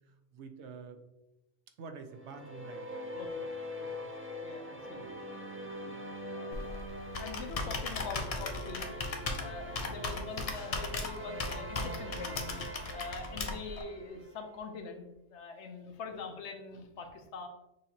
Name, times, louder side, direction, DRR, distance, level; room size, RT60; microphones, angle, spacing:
voice 1, 0.3-1.0 1.8-3.0 9.8-9.9, right 5 dB, 80° right, 6 dB, 0.9 m, -47 dB
sound 1, 2.1-14.5, equal, 20° right, 0.4 m, -43 dB
voice 2, 3.1-3.4 3.8-4.1 4.4-5.0 5.6-6.0 6.3-8.9 9.4-17.5, left 4 dB, 80° left, 4 dB, 1.0 m, -44 dB
Computer keyboard, 6.5-13.8, left 3 dB, 45° left, 0.5 m, -37 dB
6.6 x 2.8 x 2.8 m, 0.95 s
omnidirectional pair, 1.2 m